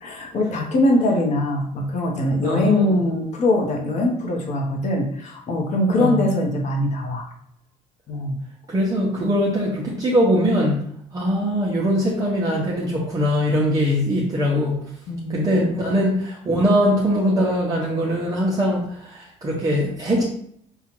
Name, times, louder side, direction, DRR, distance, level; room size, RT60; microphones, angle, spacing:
voice 1, 0.0-7.2 8.1-8.4 9.2-9.4 15.1-15.8, left 1 dB, 55° left, 1 dB, 1.0 m, -22 dB
voice 2, 2.4-3.0 5.9-6.3 8.7-10.8 11.1-14.8 15.3-20.2, equal, 25° right, -5 dB, 0.8 m, -21 dB
5.5 x 2.4 x 3.0 m, 0.68 s
cardioid pair, 130°, 14 cm